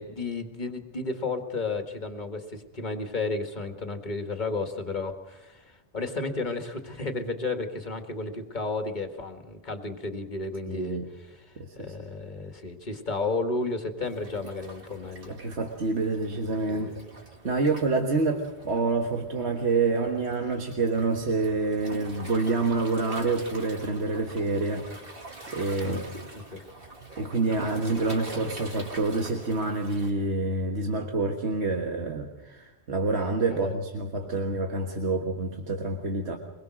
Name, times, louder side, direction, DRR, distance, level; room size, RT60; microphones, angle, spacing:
voice 1, 0.0-5.6 5.9-11.4 11.7-15.3 16.7-16.9 17.4-17.6 25.8-26.0 26.5-26.6 33.5-33.8, left 3 dB, 40° left, 5 dB, 2.0 m, -33 dB
voice 2, 10.7-11.1 11.6-11.9 15.3-16.9 17.4-24.9 25.5-26.1 27.2-36.4, right 3 dB, 75° right, 3 dB, 1.8 m, -27 dB
Waves surf, 14.0-30.1, right 2 dB, 55° right, 2.5 m, -44 dB
24.0 x 21.5 x 6.4 m, 1.0 s
omnidirectional pair, 1.1 m